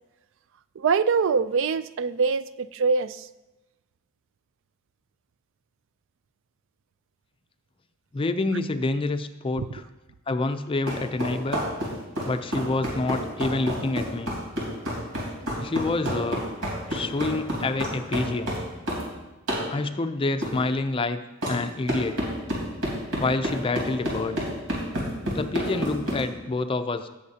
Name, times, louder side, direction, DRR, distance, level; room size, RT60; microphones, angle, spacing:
voice 1, 0.8-3.3 9.6-9.7, right 5 dB, 65° right, 15 dB, 0.4 m, -24 dB
voice 2, 8.1-9.8 10.3-11.6 12.2-14.3 15.6-16.4 16.9-18.6 19.7-21.2 21.5-22.3 23.2-24.4 25.3-27.1, left 2 dB, 25° left, 9 dB, 0.4 m, -27 dB
sound 1, 10.9-19.1 19.5-19.7 20.4-20.6 21.4-21.6 21.9-26.2, equal, 85° right, 3.7 m, -29 dB
17.5 x 7.2 x 2.8 m, 1.1 s
head